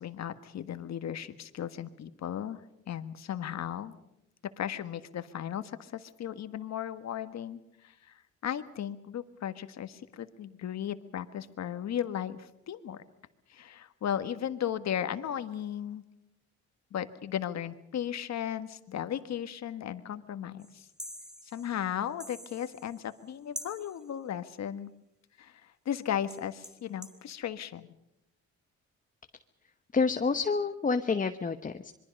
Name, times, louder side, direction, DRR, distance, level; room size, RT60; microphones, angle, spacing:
voice 1, 0.0-2.6 2.9-3.9 4.6-13.0 13.5-16.0 16.9-20.9 21.4-24.9 25.4-27.9, left 10 dB, 60° left, 10 dB, 1.5 m, -36 dB
sound 1, 20.6-23.3 23.6-24.1 26.0-26.1 26.3-27.2, equal, ahead, 1.9 m, -46 dB
voice 2, 29.9-31.9, left 4 dB, 25° left, 8 dB, 1.0 m, -28 dB
26.5 x 22.5 x 5.4 m, 0.81 s
cardioid pair, 90°, 30 cm